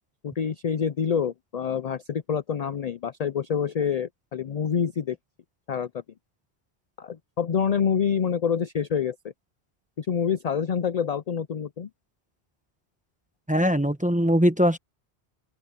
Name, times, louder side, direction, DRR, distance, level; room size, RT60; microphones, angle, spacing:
voice 1, 0.2-5.2 5.7-6.0 7.0-9.2 10.0-11.9, left 7 dB, 50° left, 0.5 m, -27 dB
voice 2, 13.5-14.8, equal, 10° right, 0.9 m, -21 dB
open air
omnidirectional pair, 1.1 m